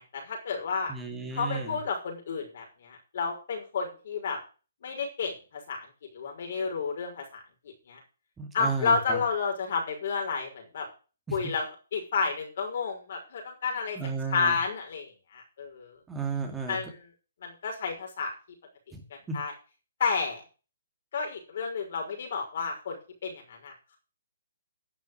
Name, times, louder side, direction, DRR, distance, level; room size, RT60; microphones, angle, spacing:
voice 1, 0.0-0.9 1.3-4.4 4.8-5.8 6.1-7.4 7.9-8.0 8.5-10.9 11.3-11.7 11.9-14.0 14.3-16.0 16.7-17.1 17.4-18.3 19.3-19.5 20.0-20.4 21.1-24.0, left 5 dB, 55° left, 2 dB, 5.9 m, -31 dB
voice 2, 0.9-1.8 8.4-9.2 11.3-11.4 14.0-14.6 16.1-16.8 18.9-19.0 19.3-19.4, right 5 dB, 10° right, 2 dB, 2.4 m, -33 dB
11.5 x 7.1 x 7.8 m, 0.36 s
hypercardioid pair, 155°, 0 cm